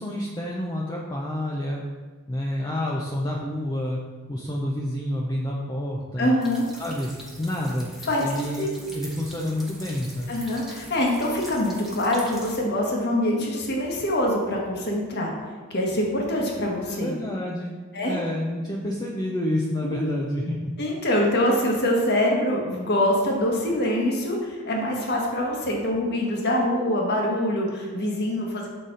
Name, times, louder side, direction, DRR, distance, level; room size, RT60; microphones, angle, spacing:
voice 1, 0.0-1.8 2.3-4.0 4.3-6.3 6.8-7.1 7.4-7.9 8.2-10.4 16.9-17.7 18.0-20.7, left 1 dB, 20° left, -3 dB, 0.5 m, -28 dB
voice 2, 6.2-6.7 8.1-8.2 8.6-8.7 10.3-15.3 15.7-17.1 17.9-18.1 19.8-20.2 20.8-28.7, left 1 dB, 50° left, -1 dB, 1.1 m, -24 dB
sound 1, 6.4-12.6, equal, ahead, 0.9 m, -43 dB
6.5 x 4.1 x 3.8 m, 1.4 s
head